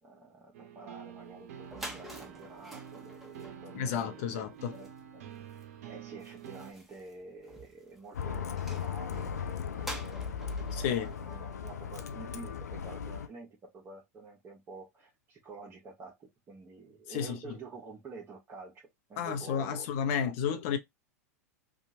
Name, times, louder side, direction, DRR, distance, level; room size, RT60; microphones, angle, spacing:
voice 1, 0.0-5.2 5.9-18.8 19.1-20.2 20.5-20.6, right 3 dB, 30° right, 1.0 m, -49 dB
sound 1, 0.5-6.7, right 8 dB, 65° right, 0.6 m, -48 dB
sound 2, 1.3-1.4 1.6-12.4, right 1 dB, ahead, 0.9 m, -49 dB
voice 2, 3.7-4.7 10.7-11.1 17.1-17.4 19.2-20.8, left 8 dB, 55° left, 0.7 m, -31 dB
Bus, 8.1-13.3, left 7 dB, 80° left, 0.4 m, -37 dB
2.8 x 2.4 x 2.7 m
hypercardioid pair, 90°, 9 cm